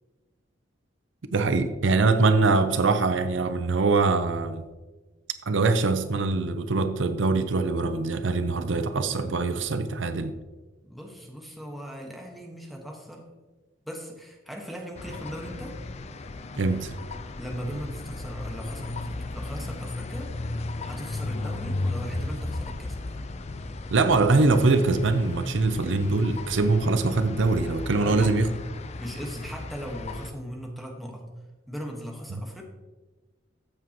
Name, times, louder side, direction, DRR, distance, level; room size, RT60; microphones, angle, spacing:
voice 1, 1.3-4.6 5.5-10.3 16.6-16.9 23.9-28.5, right 3 dB, 70° right, 9 dB, 0.6 m, -23 dB
voice 2, 10.8-13.3 13.8-15.8 17.4-20.3 20.8-23.2 28.0-28.5 29.0-31.2 31.7-32.6, equal, ahead, 0 dB, 1.4 m, -38 dB
sound 1, 14.9-30.3, left 2 dB, 35° left, 0.5 m, -35 dB
14.0 x 7.2 x 3.0 m, 1.2 s
head